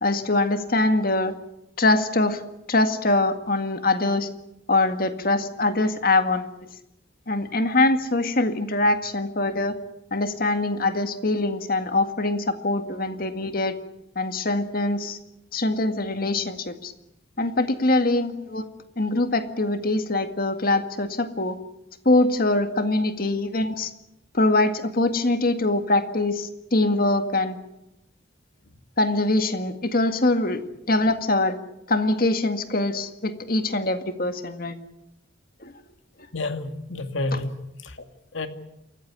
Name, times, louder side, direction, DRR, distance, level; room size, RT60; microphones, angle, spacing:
voice 1, 0.0-1.3 1.8-2.4 2.7-4.3 4.7-6.5 7.3-9.7 10.1-13.7 14.2-15.2 15.5-16.9 17.4-18.6 19.0-21.6 22.1-23.9 24.3-27.6 29.0-30.6 30.9-31.6 31.9-34.8 35.6-35.7, left 2 dB, 45° left, 8 dB, 1.9 m, -23 dB
voice 2, 36.3-38.0 38.3-38.5, left 2 dB, 75° left, 7 dB, 2.3 m, -30 dB
28.0 x 15.0 x 9.5 m, 0.87 s
head